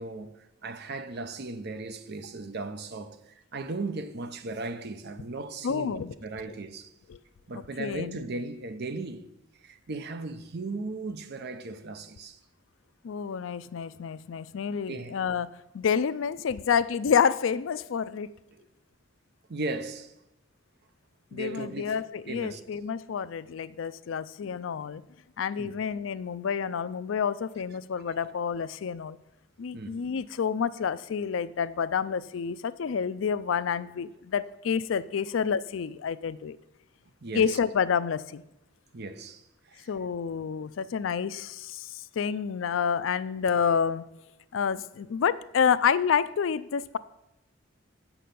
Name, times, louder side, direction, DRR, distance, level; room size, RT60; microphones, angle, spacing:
voice 1, 0.0-6.9 7.5-9.2 9.6-12.4 14.7-15.2 18.5-18.6 19.5-20.1 21.3-22.6 25.6-25.7 29.7-29.9 37.2-37.6 38.9-39.4 39.7-39.9, right 3 dB, 55° right, 0.7 m, -37 dB
voice 2, 5.6-6.1 7.1-7.2 7.5-8.2 13.0-15.5 15.7-18.3 21.3-25.0 25.4-29.2 29.6-36.6 37.3-38.4 39.9-44.0 44.5-47.0, left 7 dB, 70° left, 0.4 m, -28 dB
8.4 x 6.0 x 6.7 m
head